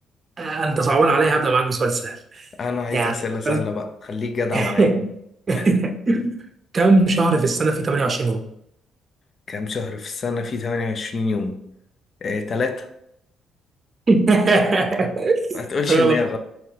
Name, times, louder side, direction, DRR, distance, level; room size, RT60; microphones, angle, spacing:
voice 1, 0.4-2.4 2.9-3.1 3.5-3.7 4.5-5.1 5.5-6.3 6.7-8.4 14.1-15.6 15.9-16.4, right 3 dB, 40° right, 0.6 m, -19 dB
voice 2, 2.6-4.9 5.5-5.7 9.5-11.6 12.2-12.9 15.5-16.4, left 4 dB, 45° left, 0.6 m, -26 dB
4.4 x 3.0 x 2.9 m
cardioid pair, 90°, 0 cm